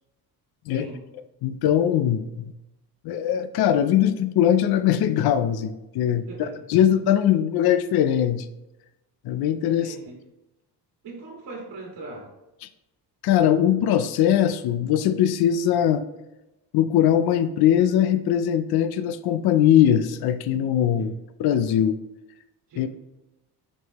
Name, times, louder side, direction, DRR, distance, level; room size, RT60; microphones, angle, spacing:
voice 1, 0.7-1.0 6.3-6.6 9.8-10.2 11.0-12.3 21.0-21.1 22.7-22.9, right 2 dB, 60° right, -2 dB, 1.9 m, -40 dB
voice 2, 1.4-2.5 3.0-6.3 6.7-8.5 9.2-9.9 13.2-16.0 16.7-21.1 21.4-22.0 22.8-22.9, left 10 dB, 65° left, 12 dB, 0.5 m, -21 dB
6.3 x 5.4 x 2.9 m, 0.94 s
cardioid pair, 175°, 40 cm